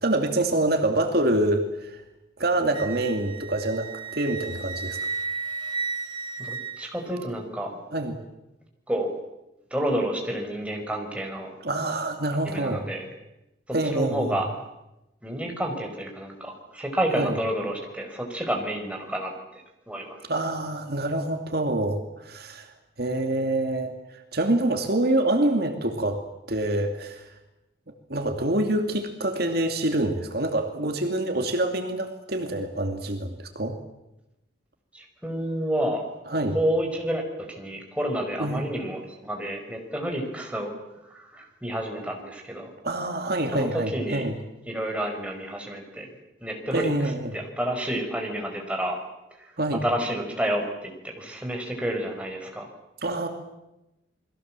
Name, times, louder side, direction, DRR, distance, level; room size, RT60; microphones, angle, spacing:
voice 1, 0.0-2.0 2.4-5.0 7.9-8.2 11.6-12.8 13.7-14.3 17.2-17.4 20.3-22.7 23.0-23.9 24.3-26.2 26.5-27.3 28.1-33.8 36.3-36.6 38.4-38.7 42.8-44.4 46.7-47.3 49.6-49.8 53.0-53.3, right 1 dB, 55° right, 5 dB, 2.5 m, -26 dB
Wind instrument woodwind instrument, 2.7-7.3, right 4 dB, 25° right, 1.9 m, -33 dB
voice 2, 6.4-7.8 8.9-9.1 9.7-11.5 12.4-13.1 13.8-14.5 15.2-20.2 34.9-36.1 36.5-40.7 41.0-42.7 43.5-44.3 44.6-46.1 46.4-49.0 49.4-49.6 49.8-52.7, right 1 dB, 5° right, 2 dB, 5.0 m, -30 dB
30.0 x 22.0 x 7.5 m, 0.92 s
head